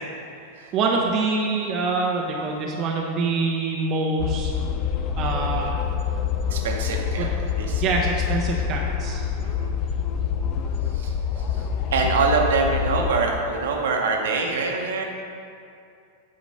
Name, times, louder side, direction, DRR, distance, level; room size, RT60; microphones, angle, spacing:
voice 1, 0.7-4.5 5.2-5.8 7.2-7.3 7.8-9.3, right 3 dB, 35° right, -1 dB, 0.8 m, -25 dB
sound 1, 4.2-13.2, left 7 dB, 35° left, 0.6 m, -26 dB
voice 2, 6.5-7.3 7.6-8.0 9.4-9.7 10.9-11.1 11.9-15.0, right 4 dB, 60° right, 1 dB, 1.1 m, -24 dB
8.9 x 5.1 x 5.5 m, 2.4 s
figure-of-eight pair, 90°, 0 cm